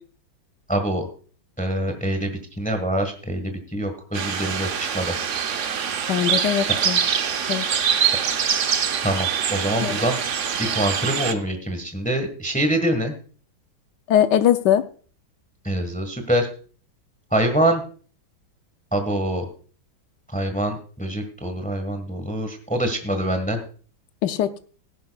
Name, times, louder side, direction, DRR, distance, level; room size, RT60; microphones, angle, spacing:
voice 1, 0.7-1.0 1.6-5.1 9.0-10.2 10.6-13.1 15.6-16.5 17.3-17.8 18.9-19.4 20.3-23.6, right 1 dB, 5° left, 7 dB, 1.2 m, -25 dB
sound 1, 4.1-11.3, right 7 dB, 60° right, 0.8 m, -24 dB
voice 2, 6.1-7.0 7.5-7.7 9.8-9.9 14.1-14.8 24.2-24.5, left 10 dB, 70° left, 11 dB, 1.2 m, -20 dB
17.0 x 10.5 x 2.3 m, 0.41 s
omnidirectional pair, 2.2 m